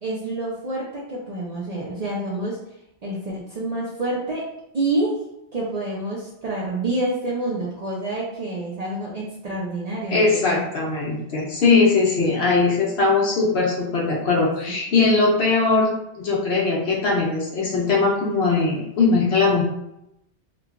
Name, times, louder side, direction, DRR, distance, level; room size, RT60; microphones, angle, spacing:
voice 1, 0.0-2.6 3.0-4.4 4.7-5.2 5.5-10.7, right 2 dB, 50° right, -5 dB, 0.5 m, -27 dB
voice 2, 10.1-15.9 16.2-19.6, left 4 dB, 70° left, -3 dB, 1.0 m, -20 dB
3.1 x 2.2 x 2.4 m, 0.84 s
omnidirectional pair, 1.1 m